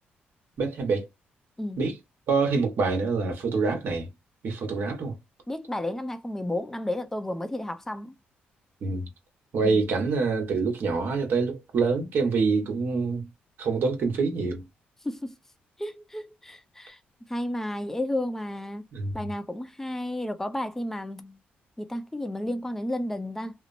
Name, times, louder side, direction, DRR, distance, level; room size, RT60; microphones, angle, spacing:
voice 1, 0.6-1.1 1.8-2.0 2.3-4.1 4.4-5.2 8.8-9.1 9.5-13.3 13.6-14.6 18.9-19.1, right 4 dB, 65° right, 1.2 m, -26 dB
voice 2, 5.5-8.1 9.6-9.9 15.0-15.3 15.8-17.0 17.3-18.8 19.1-21.4 21.8-23.5, left 1 dB, 10° left, 0.5 m, -32 dB
2.8 x 2.0 x 2.6 m
cardioid pair, 90°, 4 cm